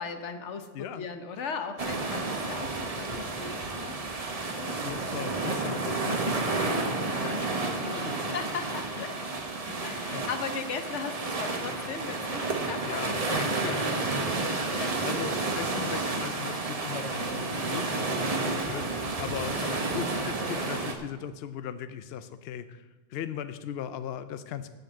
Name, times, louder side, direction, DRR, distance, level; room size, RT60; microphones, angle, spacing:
voice 1, 0.0-4.0 4.6-4.8 8.1-9.2 9.8-14.3 14.7-14.9 18.5-18.7 19.4-19.7, left 5 dB, 90° left, 8 dB, 1.3 m, -38 dB
voice 2, 0.7-1.1 4.7-8.4 9.0-9.1 9.7-10.3 12.8-24.7, left 9 dB, 65° left, 12 dB, 0.8 m, -39 dB
sound 1, 1.8-20.9, right 3 dB, 35° right, 1.0 m, -31 dB
7.8 x 7.7 x 8.5 m, 1.2 s
omnidirectional pair, 1.2 m